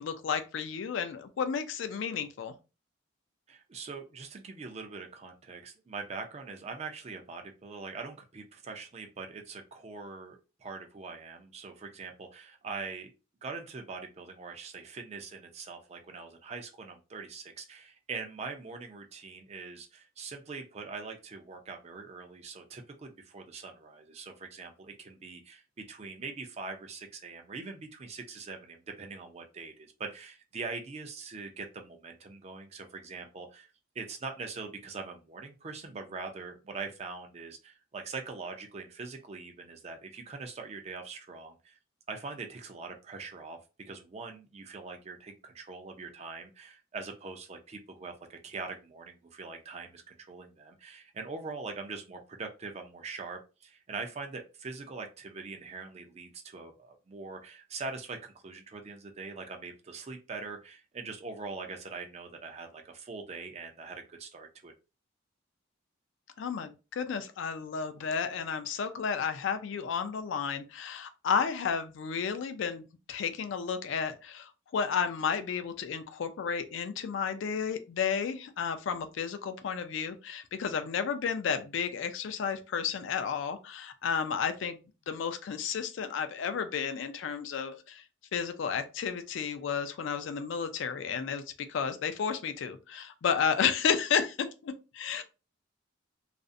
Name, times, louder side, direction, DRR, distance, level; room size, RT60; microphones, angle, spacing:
voice 1, 0.0-2.5 66.4-84.8 85.1-88.0 88.3-91.4 91.7-95.2, left 6 dB, 65° left, 0.3 m, -32 dB
voice 2, 3.5-13.1 13.4-33.7 34.0-41.8 42.1-64.7, right 4 dB, 30° right, 0.4 m, -42 dB
2.4 x 2.0 x 2.5 m
head